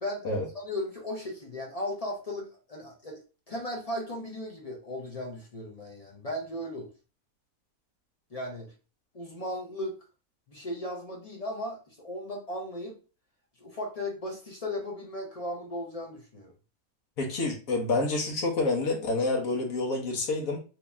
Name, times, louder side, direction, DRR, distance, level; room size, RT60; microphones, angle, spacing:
voice 1, 0.5-3.2 3.5-6.9 8.3-8.7 9.1-10.0 10.5-12.9 13.6-16.5, left 1 dB, 35° left, 0 dB, 0.6 m, -36 dB
voice 2, 17.2-20.6, left 2 dB, 70° left, 1 dB, 1.3 m, -28 dB
3.0 x 2.8 x 3.3 m, 0.34 s
omnidirectional pair, 1.5 m